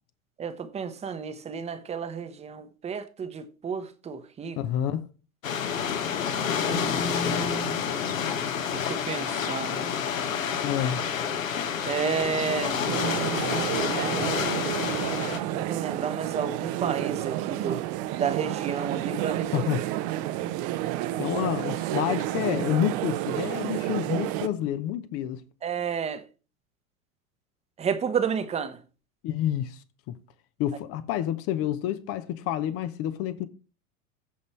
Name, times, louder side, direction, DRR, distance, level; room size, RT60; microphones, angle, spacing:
voice 1, 0.4-4.6 6.3-7.8 8.7-9.9 11.9-12.9 14.0-14.4 15.5-17.8 18.1-19.5 20.1-20.2 25.6-26.2 27.8-28.8, right 6 dB, 15° right, 1.0 m, -31 dB
voice 2, 4.6-5.1 10.6-11.0 19.5-19.9 21.2-25.4 29.2-29.8 30.1-30.2 30.6-33.5, left 11 dB, 35° left, 0.8 m, -28 dB
sound 1, 5.4-15.4, left 7 dB, 65° left, 1.4 m, -29 dB
sound 2, 12.8-24.5, right 14 dB, 40° right, 0.8 m, -30 dB
15.0 x 5.4 x 3.2 m
figure-of-eight pair, 85°, 42 cm